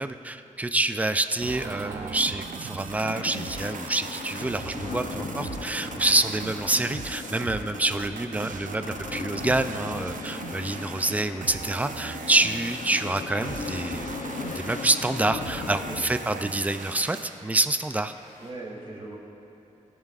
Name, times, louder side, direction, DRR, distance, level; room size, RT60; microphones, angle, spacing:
voice 1, 0.0-14.1 14.5-18.1, right 2 dB, 10° right, 10 dB, 0.3 m, -27 dB
sound 1, 1.0-18.5, left 1 dB, 20° left, 2.7 m, -52 dB
sound 2, 1.4-17.4, right 5 dB, 85° right, 0.6 m, -39 dB
sound 3, 3.0-16.0, left 5 dB, 75° left, 0.6 m, -38 dB
voice 2, 18.4-19.2, right 2 dB, 40° right, -2 dB, 2.2 m, -40 dB
20.5 x 10.5 x 2.4 m, 2.9 s
wide cardioid pair, 170°, 13 cm